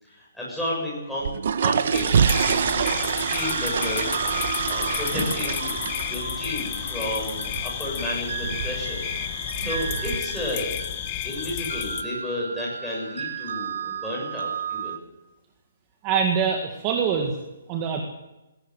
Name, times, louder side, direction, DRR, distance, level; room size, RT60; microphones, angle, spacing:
voice 1, 0.0-1.3 1.6-5.8 6.1-10.8 11.2-15.0, left 1 dB, ahead, -6 dB, 7.5 m, -32 dB
sound 1, 1.1-10.2, right 7 dB, 50° right, 1.1 m, -27 dB
sound 2, 1.9-12.0, left 12 dB, 25° left, 1.1 m, -31 dB
sound 3, 3.4-15.0, right 6 dB, 80° right, 2.9 m, -35 dB
voice 2, 16.0-17.4 17.7-18.0, right 6 dB, 20° right, 3 dB, 1.8 m, -24 dB
19.5 x 17.0 x 8.1 m, 1.0 s
hypercardioid pair, 175°, 0 cm